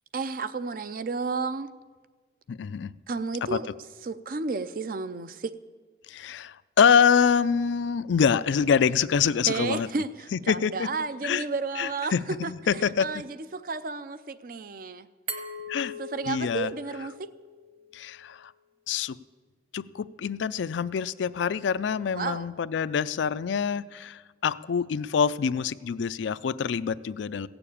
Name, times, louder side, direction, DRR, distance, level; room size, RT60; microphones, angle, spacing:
voice 1, 0.1-1.7 3.1-3.7 4.0-5.5 9.5-15.1 16.0-17.3 22.1-22.5, right 4 dB, 50° right, 14 dB, 0.5 m, -32 dB
voice 2, 2.5-2.9 6.1-9.9 10.3-10.9 11.2-11.4 11.8-13.1 15.7-15.9 16.3-16.7 17.9-18.5 18.9-19.2 19.7-27.5, left 6 dB, 80° left, 16 dB, 0.4 m, -25 dB
Glass, 15.3-18.1, equal, 30° right, 1.2 m, -40 dB
16.0 x 7.0 x 8.5 m, 1.5 s
head